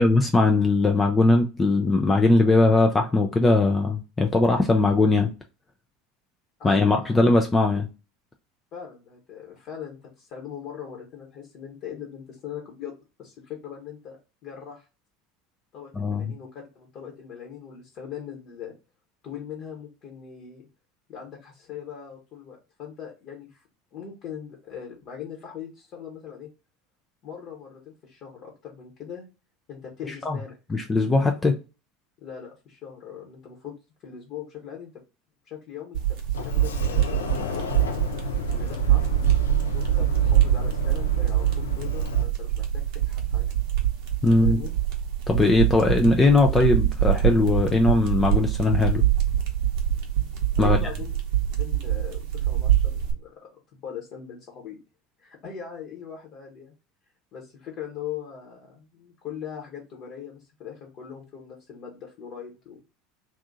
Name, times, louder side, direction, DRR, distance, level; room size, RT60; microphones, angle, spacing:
voice 1, 0.0-5.3 6.6-7.9 15.9-16.3 30.3-30.4 30.7-31.6 44.2-44.6 45.3-49.0 50.6-50.8, left 2 dB, 20° left, 0.5 m, -20 dB
voice 2, 6.6-7.2 8.7-14.9 15.7-16.5 16.7-18.7 19.2-20.7 21.1-23.6 23.9-26.5 27.2-29.2 29.7-30.6 32.2-33.7 34.0-34.9 35.5-36.2 36.4-37.8 38.5-39.3 39.6-43.5 44.3-44.7 50.6-51.1 51.6-54.8 55.2-56.7 57.3-62.8, left 8 dB, 45° left, 1.1 m, -40 dB
sound 1, 35.9-53.1, right 11 dB, 55° right, 0.8 m, -24 dB
Sliding door, 36.3-42.2, left 6 dB, 80° left, 0.4 m, -33 dB
2.7 x 2.4 x 3.8 m
figure-of-eight pair, 75°, 0 cm